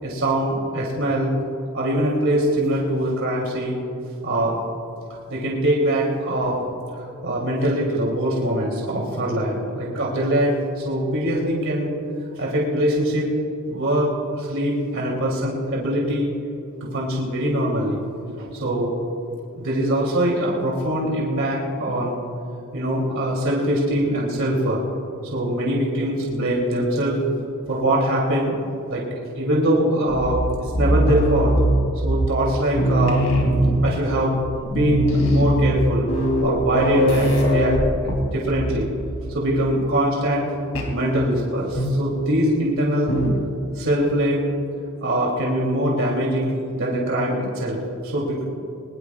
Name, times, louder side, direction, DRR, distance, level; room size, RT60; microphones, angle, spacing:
voice 1, 0.0-1.3 1.7-3.8 4.2-4.6 5.3-6.6 7.2-11.9 12.3-13.3 13.7-16.3 16.8-18.0 18.4-18.9 19.6-22.2 22.7-24.8 25.3-27.2 27.7-28.5 28.9-31.6 32.0-33.2 33.8-36.1 36.4-37.8 38.0-38.9 39.3-40.5 40.8-43.1 43.7-44.5 45.0-48.5, right 1 dB, 65° right, -3 dB, 3.0 m, -22 dB
sound 1, 30.2-32.5 32.7-34.1 34.4-34.5 34.7-38.8 39.1-39.4 40.7-41.0 41.7-42.2 43.1-43.5, equal, 75° left, 3.0 m, -21 dB
22.0 x 21.5 x 2.5 m, 2.8 s
head